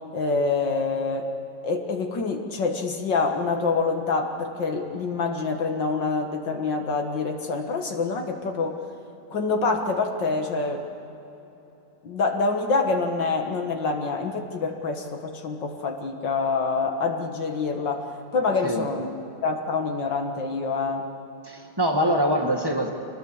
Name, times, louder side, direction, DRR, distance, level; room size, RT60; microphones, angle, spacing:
voice 1, 0.1-1.3 1.6-8.8 9.3-10.9 12.0-19.1 19.4-21.1, left 4 dB, 70° left, 3 dB, 2.2 m, -26 dB
voice 2, 21.5-22.9, equal, 10° right, 3 dB, 1.8 m, -24 dB
26.0 x 19.5 x 7.3 m, 3.0 s
omnidirectional pair, 2.1 m